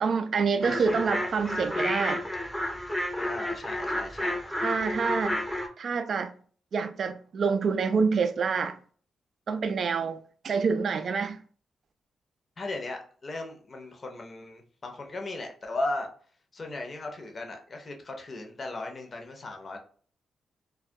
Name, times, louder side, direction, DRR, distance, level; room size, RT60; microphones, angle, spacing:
voice 1, 0.0-2.2 4.6-5.4 5.8-6.3 6.7-8.8 9.5-10.2 10.4-11.4, right 5 dB, 65° right, 0.3 m, -27 dB
voice 2, 0.6-1.0 3.2-4.4 12.6-16.1 16.5-19.8, left 2 dB, 45° left, 0.6 m, -37 dB
sound 1, 0.6-5.7, left 1 dB, 5° left, 0.5 m, -31 dB
2.2 x 2.1 x 2.6 m
supercardioid pair, 55°, 0 cm